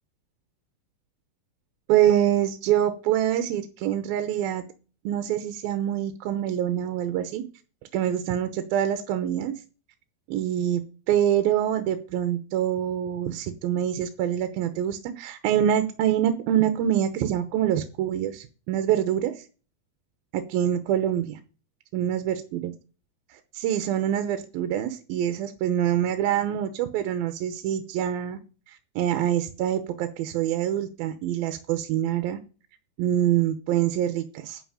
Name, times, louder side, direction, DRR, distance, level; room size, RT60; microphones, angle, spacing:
voice 1, 1.9-4.6 5.0-7.4 7.9-9.5 10.3-10.8 11.1-19.4 20.3-21.4 21.9-22.7 23.5-28.4 28.7-32.4 33.0-34.6, right 11 dB, 75° right, 8 dB, 2.6 m, -25 dB
11.0 x 5.6 x 8.7 m, 0.36 s
omnidirectional pair, 4.5 m